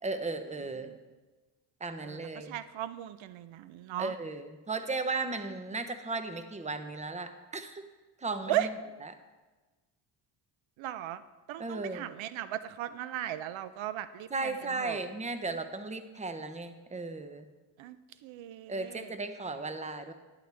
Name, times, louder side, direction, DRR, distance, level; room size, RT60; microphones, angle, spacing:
voice 1, 0.0-0.9 1.8-2.5 4.0-7.8 8.2-8.7 11.6-12.1 14.3-17.4 18.7-20.1, right 3 dB, 15° right, 9 dB, 0.8 m, -35 dB
voice 2, 2.0-4.1 8.5-8.7 10.8-11.2 11.5-14.5 14.8-15.0 17.8-18.0 18.2-19.1, right 12 dB, 75° right, 14 dB, 0.6 m, -36 dB
11.0 x 11.0 x 3.4 m, 1.2 s
cardioid pair, 85°, 47 cm